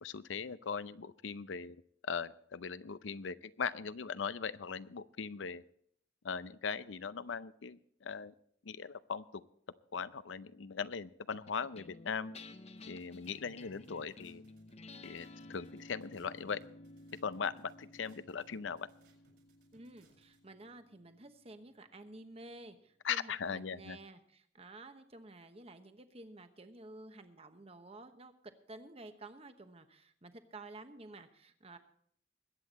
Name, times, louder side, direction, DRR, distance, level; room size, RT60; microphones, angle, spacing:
voice 1, 0.0-1.8 2.0-5.6 6.2-8.3 8.6-9.4 9.9-12.3 12.9-14.4 15.0-16.6 17.2-18.9 23.0-24.0, left 6 dB, 85° left, 15 dB, 0.6 m, -39 dB
sound 1, 11.3-21.9, left 2 dB, 35° left, 0.6 m, -54 dB
sound 2, 12.8-20.4, right 3 dB, 60° right, 4.4 m, -71 dB
voice 2, 19.7-31.8, right 2 dB, 30° right, 9 dB, 1.0 m, -52 dB
21.5 x 8.6 x 4.2 m, 0.65 s
head